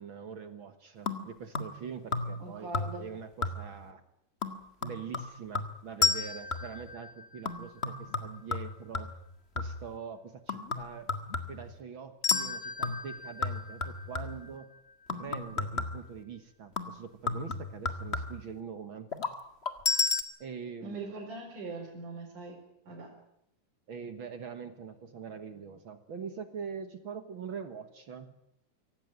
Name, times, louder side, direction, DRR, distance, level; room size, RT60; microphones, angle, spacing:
voice 1, 0.0-4.0 4.8-9.1 9.5-11.1 11.5-14.7 15.1-19.1 20.4-21.1 23.9-28.3, right 6 dB, 50° right, 9 dB, 1.6 m, -43 dB
sound 1, 1.1-1.8 2.1-2.5 2.7-3.1 3.4-3.8 4.4-6.8 7.4-9.9 10.5-11.8 12.3-12.5 12.8-14.5 15.1-16.1 16.8-18.5 19.1-19.3 19.6-19.7, left 3 dB, 30° left, 1.3 m, -36 dB
voice 2, 2.4-3.1 20.8-22.6 22.9-23.1, right 3 dB, 75° right, -2 dB, 5.9 m, -41 dB
sound 2, 6.0-8.1 12.2-15.3 19.9-20.2, left 5 dB, 75° left, 0.6 m, -32 dB
24.5 x 17.5 x 9.3 m, 0.75 s
omnidirectional pair, 3.7 m